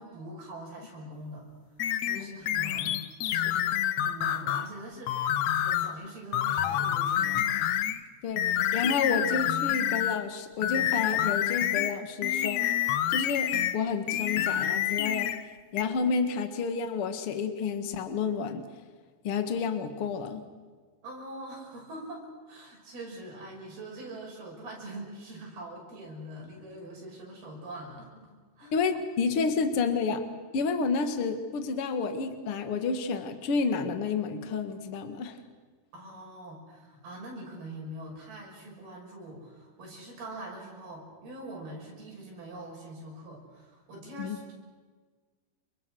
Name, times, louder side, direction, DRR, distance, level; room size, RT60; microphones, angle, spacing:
voice 1, 0.0-1.5 1.7-3.6 3.9-7.6 21.0-28.3 28.6-28.7 35.9-44.5, right 1 dB, 70° right, -2 dB, 8.0 m, -43 dB
sound 1, 1.8-4.7 5.1-6.0 6.3-8.0 8.4-10.3 10.6-13.8 14.1-15.4 15.8-15.9, left 11 dB, 80° left, 1.6 m, -28 dB
voice 2, 8.7-12.6 13.1-15.3 15.7-18.6 19.2-20.4 28.7-30.2 30.5-35.4 44.2-44.4, left 5 dB, 45° left, 7 dB, 2.2 m, -30 dB
30.0 x 25.0 x 6.5 m, 1.5 s
omnidirectional pair, 4.6 m